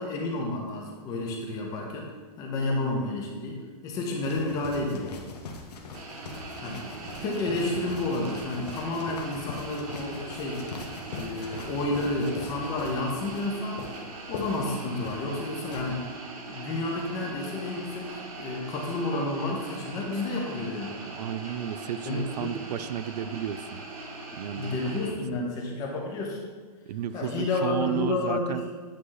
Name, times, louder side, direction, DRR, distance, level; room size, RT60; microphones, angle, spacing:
voice 1, 0.0-2.1 2.4-5.2 6.6-6.8 7.2-10.6 11.1-13.8 14.3-16.1 16.4-21.0 22.1-22.5 24.6-26.4 27.1-28.6, left 2 dB, 20° left, 0 dB, 0.6 m, -30 dB
sound 1, 4.2-15.9, left 3 dB, 80° left, 1.1 m, -41 dB
sound 2, 5.9-25.1, right 2 dB, 60° right, 1.3 m, -41 dB
voice 2, 6.8-7.3 21.1-23.8 24.4-24.8 25.1-25.2 26.9-28.6, right 10 dB, 85° right, 13 dB, 0.4 m, -33 dB
8.5 x 3.1 x 3.8 m, 1.4 s
supercardioid pair, 170°, 20 cm